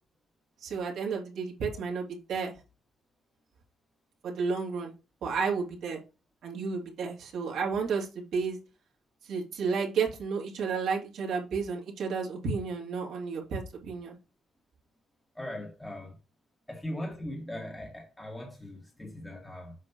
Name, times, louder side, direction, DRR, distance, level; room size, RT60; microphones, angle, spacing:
voice 1, 0.6-2.5 4.2-4.9 5.2-6.0 6.4-8.6 9.2-14.2, right 5 dB, 70° right, 2.4 m, -32 dB
voice 2, 15.4-16.2 16.7-19.7, left 1 dB, 10° left, 1.9 m, -39 dB
7.5 x 5.3 x 2.9 m
cardioid pair, 90°, 0 cm